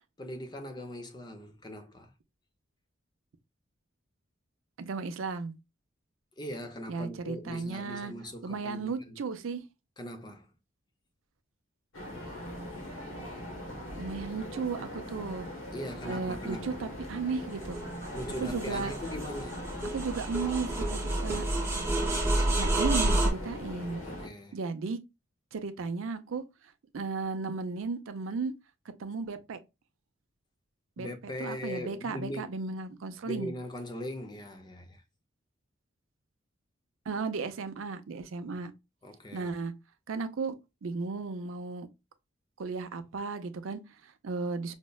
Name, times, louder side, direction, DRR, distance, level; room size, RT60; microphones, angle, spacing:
voice 1, 0.2-2.1 6.4-9.2 10.0-10.5 15.7-16.8 18.1-19.6 24.0-24.6 31.0-32.5 33.2-35.0 39.0-39.5, left 1 dB, 20° left, 0.4 m, -40 dB
voice 2, 4.8-5.5 6.9-8.1 8.4-9.6 14.0-15.5 16.1-17.8 18.4-18.9 19.9-21.4 22.5-24.0 24.5-25.0 25.5-26.4 26.9-28.5 29.0-29.6 31.0-33.5 37.1-38.7 39.3-39.7 40.1-40.5 40.8-41.9 42.6-44.7, right 4 dB, 80° right, 0.5 m, -35 dB
sound 1, 11.9-24.3, left 1 dB, 85° left, 1.1 m, -41 dB
sound 2, 17.6-23.3, right 1 dB, 10° right, 0.8 m, -29 dB
5.1 x 2.1 x 2.2 m
head